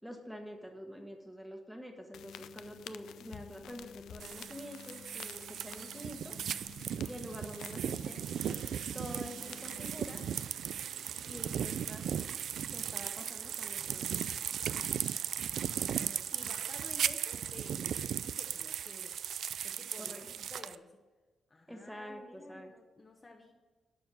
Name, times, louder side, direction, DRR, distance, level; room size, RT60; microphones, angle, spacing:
voice 1, 0.0-6.3 7.0-8.6 8.9-10.2 11.3-12.0 12.7-14.2 20.0-20.2 21.7-22.7, equal, ahead, 3 dB, 1.4 m, -46 dB
sound 1, 2.1-10.5, left 9 dB, 90° left, 0.4 m, -51 dB
sound 2, 4.2-20.8, right 9 dB, 70° right, 0.3 m, -37 dB
voice 2, 15.6-19.2 19.6-21.0 21.5-23.5, left 2 dB, 25° left, 1 dB, 1.0 m, -53 dB
12.0 x 4.6 x 7.7 m, 1.2 s
cardioid pair, 140°, 0 cm